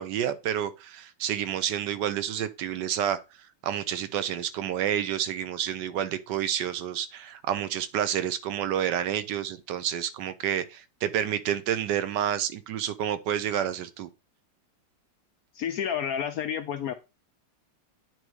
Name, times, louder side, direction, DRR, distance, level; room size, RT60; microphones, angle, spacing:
voice 1, 0.0-3.2 3.6-14.1, right 10 dB, 75° right, 1.2 m, -29 dB
voice 2, 15.5-16.9, left 8 dB, 70° left, 0.9 m, -30 dB
9.0 x 3.1 x 4.7 m
omnidirectional pair, 2.0 m